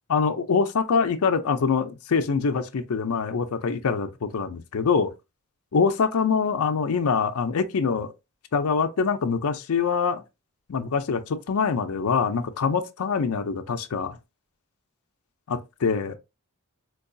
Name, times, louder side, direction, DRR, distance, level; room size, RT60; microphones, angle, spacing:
voice 1, 0.1-5.1 5.7-8.1 8.5-10.2 10.7-14.2 15.5-16.2, left 5 dB, 90° left, 0.5 m, -24 dB
4.6 x 2.3 x 2.6 m
head